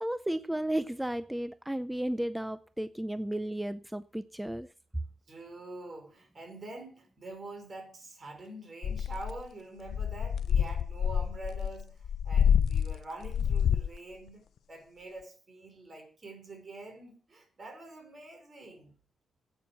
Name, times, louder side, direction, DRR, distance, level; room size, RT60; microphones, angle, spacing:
voice 1, 0.0-4.7, right 1 dB, 5° right, 0.5 m, -33 dB
voice 2, 5.3-18.9, right 2 dB, 35° right, 4.8 m, -46 dB
sound 1, 8.8-9.4 9.9-13.9, left 8 dB, 70° left, 0.6 m, -27 dB
11.0 x 8.8 x 7.3 m
wide cardioid pair, 130°, 0 cm